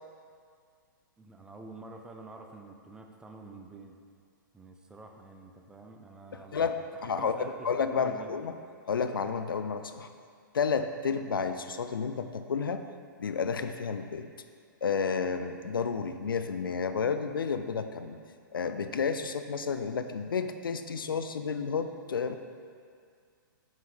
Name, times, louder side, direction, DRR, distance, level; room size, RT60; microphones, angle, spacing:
voice 1, 1.2-4.0 4.5-7.6 7.9-8.3, right 3 dB, 5° right, 2 dB, 0.4 m, -48 dB
voice 2, 6.5-8.5 8.9-10.1 10.5-12.8 13.2-14.3 14.8-18.2 18.5-22.4, left 5 dB, 85° left, 9 dB, 0.4 m, -31 dB
5.5 x 4.9 x 3.7 m, 2.1 s
hypercardioid pair, 120°, 11 cm